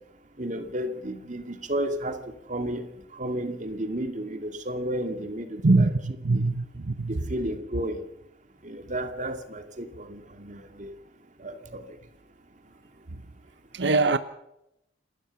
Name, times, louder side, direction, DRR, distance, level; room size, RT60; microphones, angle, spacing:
voice 1, 0.4-2.2 2.5-2.9 3.1-5.9 6.3-6.5 7.1-8.0 8.6-10.9 11.4-11.8, right 1 dB, 45° right, 2.4 m, -32 dB
voice 2, 5.6-7.2 13.1-13.2 13.7-14.2, right 3 dB, 90° right, 0.9 m, -23 dB
28.0 x 13.5 x 7.1 m
head